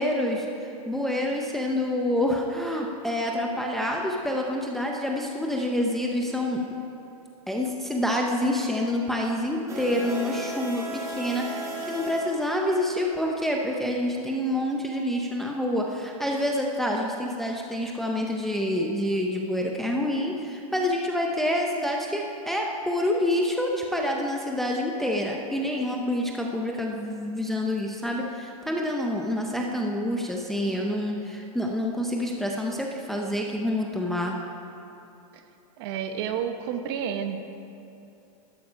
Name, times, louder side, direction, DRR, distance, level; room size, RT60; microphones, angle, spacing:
voice 1, 0.0-6.6 7.5-34.4, left 1 dB, ahead, 0 dB, 0.5 m, -27 dB
sound 1, 9.7-12.9, right 1 dB, 15° right, 1.6 m, -35 dB
voice 2, 35.8-37.4, right 8 dB, 45° right, 8 dB, 0.9 m, -30 dB
12.0 x 12.0 x 5.0 m, 2.8 s
supercardioid pair, 165°, 19 cm